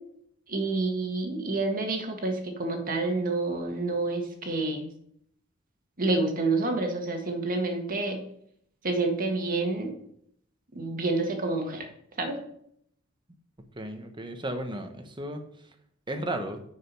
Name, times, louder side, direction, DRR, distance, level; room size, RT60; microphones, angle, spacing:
voice 1, 0.5-4.9 6.0-8.2 8.8-9.9 10.7-11.9 12.2-12.4, right 3 dB, 45° right, 3 dB, 1.7 m, -28 dB
voice 2, 13.7-15.4 16.1-16.6, right 1 dB, 25° right, 6 dB, 1.1 m, -34 dB
10.0 x 5.2 x 5.5 m, 0.70 s
head